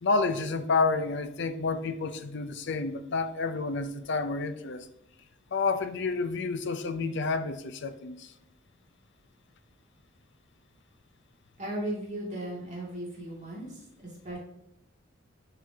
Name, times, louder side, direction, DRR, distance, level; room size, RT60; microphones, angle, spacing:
voice 1, 0.0-4.9 5.5-8.3, left 4 dB, 65° left, 0.5 m, -29 dB
voice 2, 11.6-14.4, right 1 dB, 40° right, 2.2 m, -36 dB
11.0 x 4.0 x 2.8 m
head